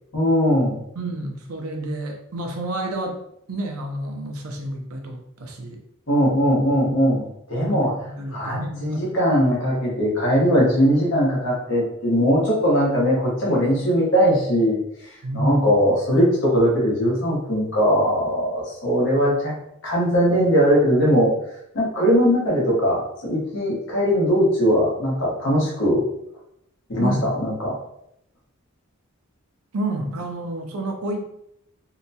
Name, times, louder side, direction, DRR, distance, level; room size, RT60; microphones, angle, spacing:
voice 1, 0.1-0.8 6.1-7.9 8.3-19.5 19.8-21.3 21.7-26.0 26.9-27.8, equal, 60° left, -4 dB, 1.0 m, -20 dB
voice 2, 1.0-3.2 3.5-5.8 7.6-9.0 15.2-15.7 27.0-27.3 29.7-31.2, right 1 dB, 90° right, 3 dB, 0.6 m, -29 dB
2.8 x 2.2 x 2.7 m, 0.77 s
head